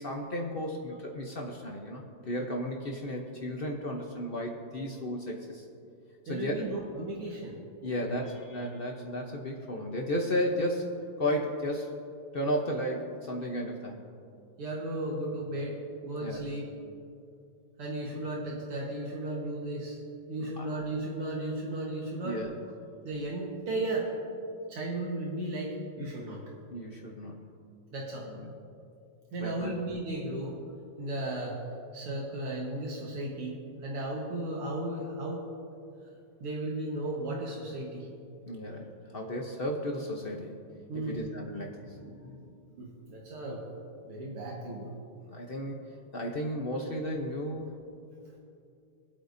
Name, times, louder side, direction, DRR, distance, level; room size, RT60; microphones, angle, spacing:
voice 1, 0.0-5.7 6.2-6.8 7.8-11.9 12.3-14.0 16.2-16.5 20.6-20.7 22.2-22.5 26.7-27.5 28.3-28.5 29.4-29.7 38.5-40.6 41.0-42.5 45.3-45.8 46.1-47.7, equal, 85° left, 0 dB, 0.5 m, -34 dB
voice 2, 6.3-7.6 7.8-8.2 14.6-16.7 17.8-20.0 20.3-22.4 23.0-24.1 24.7-26.4 27.9-28.3 29.3-30.6 31.0-31.6 31.9-35.4 36.4-38.1 40.9-41.3 42.8-43.7 44.1-44.9, right 1 dB, 80° right, -3 dB, 2.3 m, -35 dB
25.0 x 8.5 x 2.7 m, 2.6 s
omnidirectional pair, 2.4 m